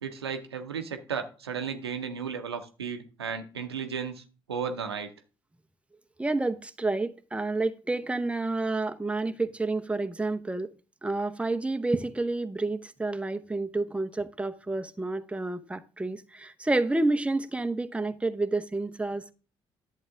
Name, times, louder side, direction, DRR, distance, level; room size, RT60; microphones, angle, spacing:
voice 1, 0.0-4.2 4.5-5.1, right 6 dB, 85° right, 0.7 m, -34 dB
voice 2, 6.2-10.7 11.0-19.3, right 2 dB, 10° right, 0.8 m, -29 dB
11.0 x 7.4 x 3.6 m
figure-of-eight pair, 45°, 13 cm